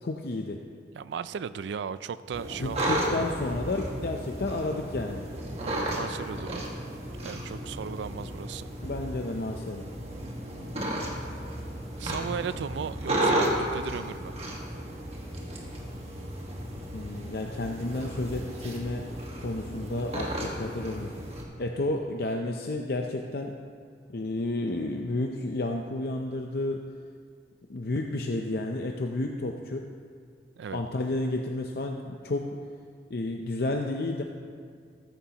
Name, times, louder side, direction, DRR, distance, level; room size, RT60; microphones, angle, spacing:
voice 1, 0.0-0.6 2.6-5.2 8.8-9.9 16.9-19.1 19.4-21.1 21.6-23.5 24.1-26.8 27.7-29.9 30.7-32.6 33.1-34.2, left 2 dB, 60° left, 2 dB, 0.6 m, -31 dB
voice 2, 1.0-3.3 5.6-6.7 7.2-8.7 12.0-14.4 30.6-30.8, right 6 dB, 85° right, 15 dB, 0.3 m, -36 dB
sound 1, 2.3-21.4, right 1 dB, 35° right, 1.5 m, -33 dB
14.0 x 14.0 x 2.9 m, 2.1 s
head